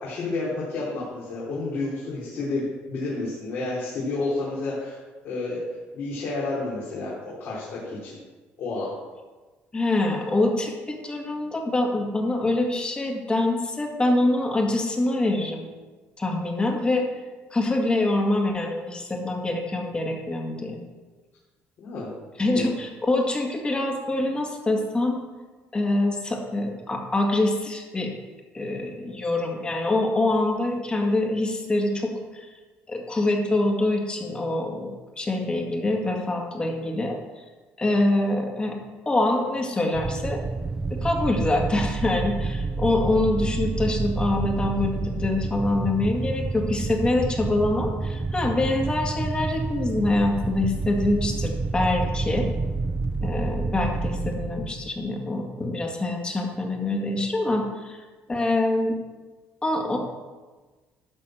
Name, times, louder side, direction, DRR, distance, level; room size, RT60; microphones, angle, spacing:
voice 1, 0.0-5.0 5.2-5.6 5.9-8.2 8.6-8.9 21.8-22.1 22.5-22.7, left 3 dB, 60° left, -6 dB, 2.9 m, -30 dB
voice 2, 9.7-15.7 16.2-17.1 17.5-20.8 22.4-25.2 25.7-28.1 28.5-32.5 32.9-37.2 37.8-38.8 39.1-40.4 41.0-52.5 53.2-58.0 58.3-59.0 59.6-60.0, left 2 dB, 20° left, 2 dB, 1.9 m, -25 dB
sound 1, 39.9-55.1, right 3 dB, 20° right, 0.4 m, -29 dB
11.5 x 4.2 x 7.7 m, 1.3 s
cardioid pair, 100°, 5 cm